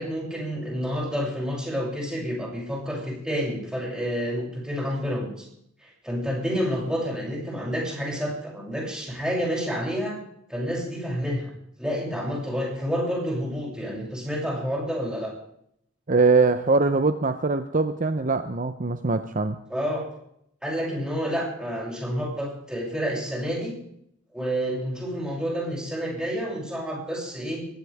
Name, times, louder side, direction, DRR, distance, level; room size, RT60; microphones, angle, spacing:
voice 1, 0.0-5.5 5.8-10.2 10.5-11.5 11.8-15.3 19.7-20.0 20.6-23.7 24.3-27.7, equal, 5° right, -3 dB, 7.3 m, -29 dB
voice 2, 16.1-19.6, right 3 dB, 40° right, 9 dB, 0.8 m, -22 dB
22.0 x 16.0 x 3.6 m, 0.73 s
head